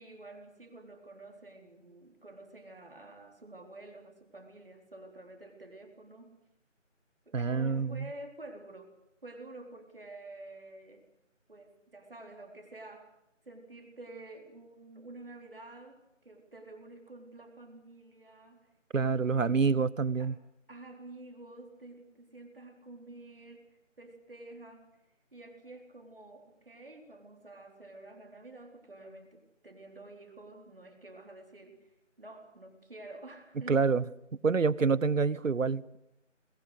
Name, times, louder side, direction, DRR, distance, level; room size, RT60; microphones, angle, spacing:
voice 1, 0.0-6.4 7.3-11.1 11.5-13.1 13.5-19.9 20.2-20.3 20.7-25.0 25.3-33.9, right 2 dB, 45° right, 3.9 m, -50 dB
voice 2, 7.3-8.1 18.9-20.3 33.7-34.0 34.4-36.0, right 5 dB, 90° right, 1.0 m, -27 dB
22.5 x 20.5 x 8.1 m
figure-of-eight pair, 180°, 38 cm